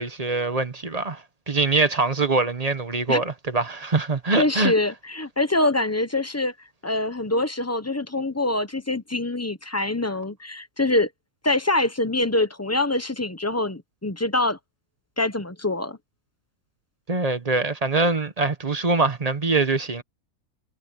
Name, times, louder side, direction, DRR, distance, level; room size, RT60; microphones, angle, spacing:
voice 1, 0.0-4.7 17.1-20.0, right 3 dB, 30° right, 1.1 m, -23 dB
voice 2, 4.4-6.5 6.8-11.1 11.4-14.6 15.2-16.0, left 2 dB, 15° left, 0.8 m, -24 dB
omnidirectional pair, 1.6 m